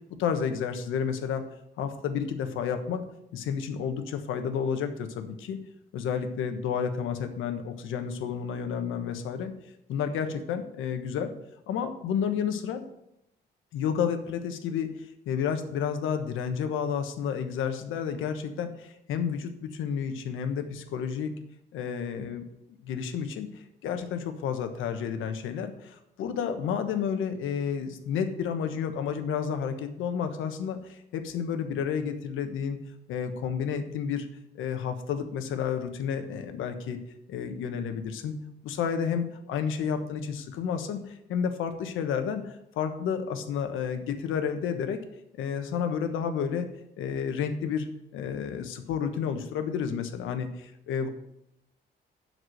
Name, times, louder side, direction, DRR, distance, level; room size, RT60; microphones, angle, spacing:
voice 1, 0.2-1.5 1.8-3.0 3.3-5.6 5.9-9.5 9.9-11.3 11.7-12.8 13.7-21.3 21.7-22.4 22.8-23.5 23.8-32.8 33.1-34.3 34.5-37.0 37.3-38.3 38.6-45.0 45.3-46.7 47.0-47.9 48.1-51.1, left 7 dB, 85° left, 7 dB, 1.2 m, -31 dB
8.2 x 6.0 x 7.8 m, 0.82 s
cardioid pair, 90°, 20 cm